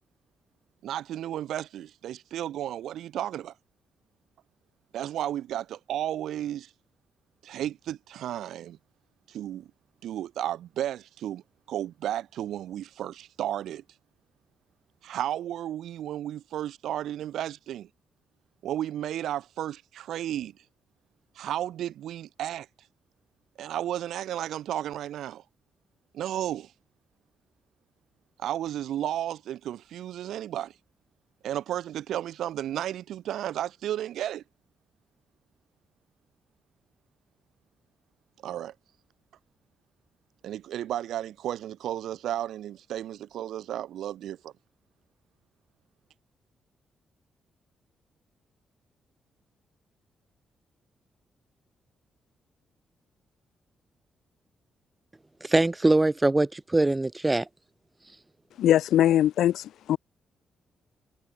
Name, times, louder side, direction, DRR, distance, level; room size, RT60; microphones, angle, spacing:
voice 1, 0.8-3.5 4.9-6.7 7.4-8.8 9.3-9.7 10.0-11.4 11.7-13.8 15.0-17.9 18.6-20.5 21.3-22.7 23.6-25.4 26.1-26.7 28.4-30.7 31.4-34.4 38.4-38.7 40.4-44.5, right 11 dB, 85° right, 6.6 m, -33 dB
voice 2, 55.4-57.5, right 2 dB, 10° right, 2.2 m, -23 dB
voice 3, 58.6-59.6 59.9-60.0, left 11 dB, 85° left, 0.3 m, -21 dB
wide cardioid pair, 180°, 0 cm